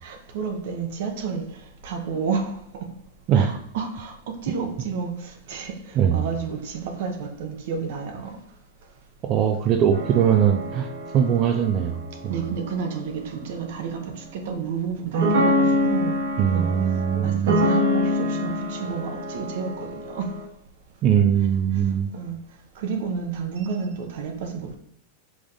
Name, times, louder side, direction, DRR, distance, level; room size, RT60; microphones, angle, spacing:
voice 1, 0.0-1.5 1.8-2.9 3.3-8.4 12.3-16.2 17.2-20.4 22.1-22.4 22.8-24.8, right 5 dB, 65° right, 0.9 m, -30 dB
voice 2, 9.2-10.9 11.1-12.3 16.4-17.6 21.0-22.1, right 8 dB, 40° right, 0.4 m, -21 dB
sound 1, 9.9-13.0 14.4-14.6 15.1-20.4, left 1 dB, 80° right, 1.3 m, -26 dB
5.0 x 3.6 x 2.5 m
hypercardioid pair, 110°, 0 cm